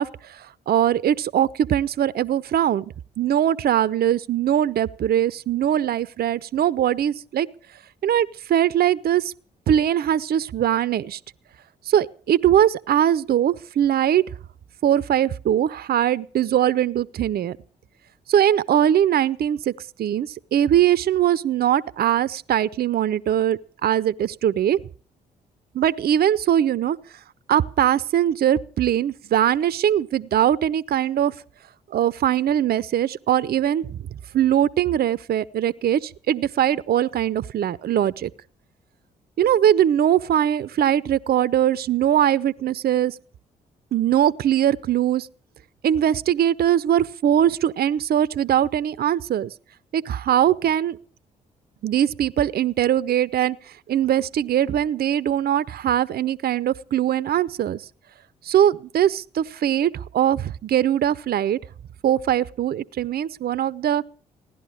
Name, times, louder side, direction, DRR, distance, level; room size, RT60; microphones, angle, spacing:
voice 1, 0.0-2.9 3.2-7.5 8.0-9.3 9.7-11.2 11.9-14.2 14.8-17.6 18.3-19.7 20.0-24.8 25.7-27.0 27.5-31.3 31.9-34.0 34.3-38.3 39.4-43.2 43.9-45.3 45.8-49.5 49.9-51.0 51.8-53.6 53.9-57.8 58.4-61.6 62.0-64.0, right 10 dB, 55° right, 0.6 m, -21 dB
16.5 x 11.0 x 6.4 m
hypercardioid pair, 45°, 19 cm